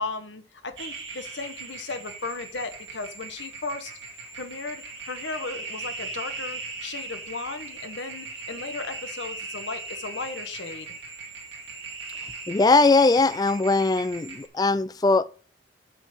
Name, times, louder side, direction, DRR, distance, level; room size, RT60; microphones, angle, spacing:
voice 1, 0.0-3.9 4.3-10.9, left 3 dB, 85° left, 1.2 m, -35 dB
sound 1, 0.8-14.5, right 3 dB, 85° right, 2.2 m, -39 dB
voice 2, 12.5-15.2, left 3 dB, 20° left, 0.3 m, -20 dB
7.4 x 5.5 x 6.5 m
head